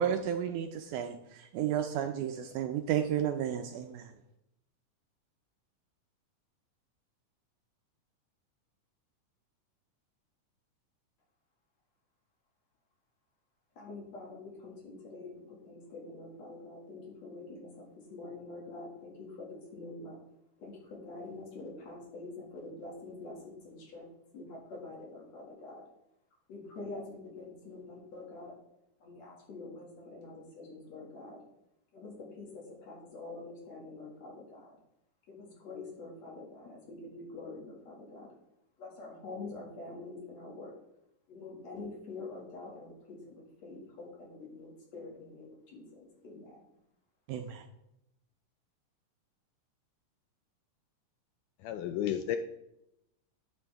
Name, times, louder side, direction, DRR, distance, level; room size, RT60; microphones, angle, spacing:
voice 1, 0.0-4.1 47.3-47.6, right 9 dB, 80° right, 6 dB, 1.8 m, -32 dB
voice 2, 13.8-20.2 20.6-24.1 24.3-25.8 26.5-28.5 29.0-31.4 31.9-34.8 35.3-38.4 38.8-40.7 41.3-46.6, left 3 dB, 55° left, -2 dB, 3.0 m, -46 dB
voice 3, 51.6-52.4, left 10 dB, 80° left, 8 dB, 1.9 m, -32 dB
12.0 x 7.0 x 3.4 m, 0.84 s
omnidirectional pair, 3.9 m